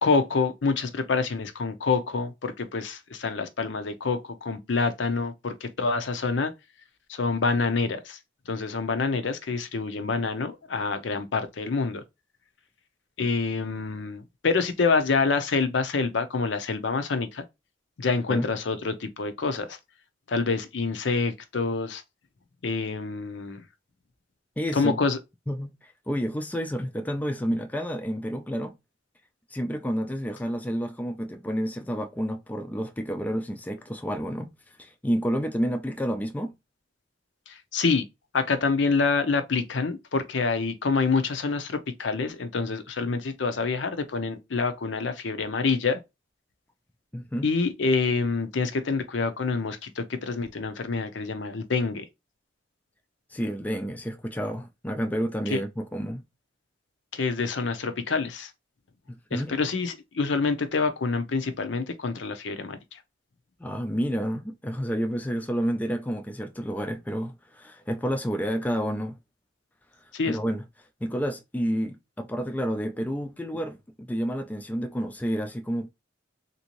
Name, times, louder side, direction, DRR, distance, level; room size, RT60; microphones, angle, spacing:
voice 1, 0.0-6.5 7.1-8.2 8.5-12.0 13.2-17.4 18.0-19.8 20.3-22.0 22.6-23.6 24.7-25.2 37.5-38.0 38.3-46.0 47.4-52.0 55.5-55.6 57.1-58.5 59.3-62.8 70.1-70.4, left 4 dB, 70° left, 0.6 m, -27 dB
voice 2, 24.6-25.0 25.5-28.7 29.5-36.5 47.1-47.5 53.3-56.2 59.1-59.5 63.6-69.2 70.3-70.6 71.0-75.9, equal, 10° left, 0.3 m, -30 dB
3.5 x 2.6 x 2.9 m
head